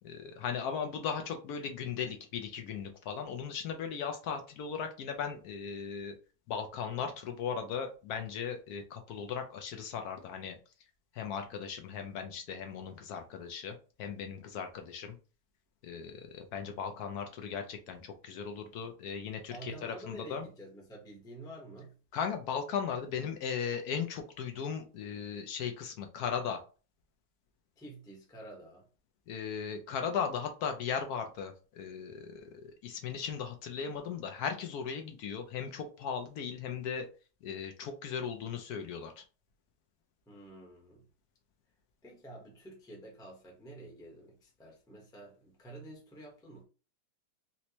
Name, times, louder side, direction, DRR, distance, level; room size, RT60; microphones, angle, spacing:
voice 1, 0.0-6.1 6.5-10.5 11.1-15.2 15.8-20.4 22.1-26.6 29.3-37.1 37.4-39.2, left 7 dB, 75° left, 0.9 m, -37 dB
voice 2, 19.5-21.9 27.8-28.9 40.3-41.0 42.0-46.6, right 1 dB, 5° left, 0.6 m, -49 dB
4.2 x 2.1 x 2.8 m
omnidirectional pair, 2.0 m